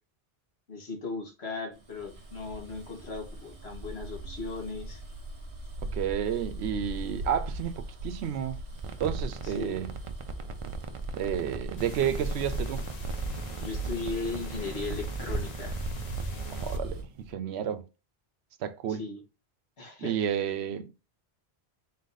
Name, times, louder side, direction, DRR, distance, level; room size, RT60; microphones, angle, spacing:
voice 1, 0.7-5.0 9.4-9.8 13.6-15.8 18.9-19.2 19.8-20.1, left 4 dB, 80° left, 1.6 m, -37 dB
Bus, 1.9-17.0, right 2 dB, 35° right, 0.8 m, -38 dB
voice 2, 5.8-8.6 9.0-9.9 11.2-12.8 16.6-17.8 18.6-19.0 20.0-20.9, right 9 dB, 85° right, 0.8 m, -31 dB
sound 1, 8.7-17.3, right 5 dB, 55° right, 0.3 m, -42 dB
sound 2, 11.8-16.8, left 5 dB, 45° left, 0.7 m, -47 dB
4.0 x 2.6 x 3.8 m
omnidirectional pair, 1.1 m